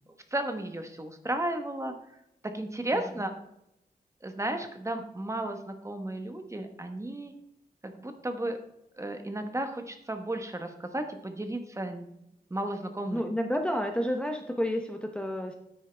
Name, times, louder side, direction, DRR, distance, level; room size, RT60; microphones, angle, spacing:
voice 1, 0.3-1.9 2.5-3.3 4.2-7.3 7.8-8.6 9.0-12.1 12.5-13.2, right 1 dB, 20° right, 6 dB, 1.0 m, -34 dB
voice 2, 13.1-15.5, equal, 5° left, 3 dB, 0.7 m, -30 dB
9.9 x 8.4 x 3.3 m, 0.83 s
wide cardioid pair, 135°, 16 cm